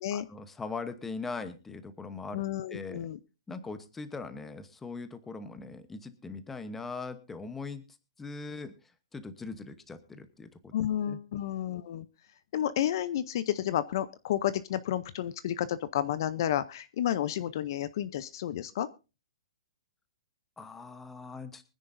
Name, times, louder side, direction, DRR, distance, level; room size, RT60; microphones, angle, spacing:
voice 1, 0.1-2.4 2.7-3.1 3.5-7.8 8.2-8.7 9.1-10.7 11.1-11.2 20.6-21.6, left 4 dB, 5° left, 11 dB, 0.9 m, -40 dB
voice 2, 2.3-3.2 10.7-12.1 12.5-18.9, left 11 dB, 45° left, 15 dB, 0.6 m, -31 dB
23.5 x 10.0 x 2.6 m, 0.30 s
hypercardioid pair, 170°, 3 cm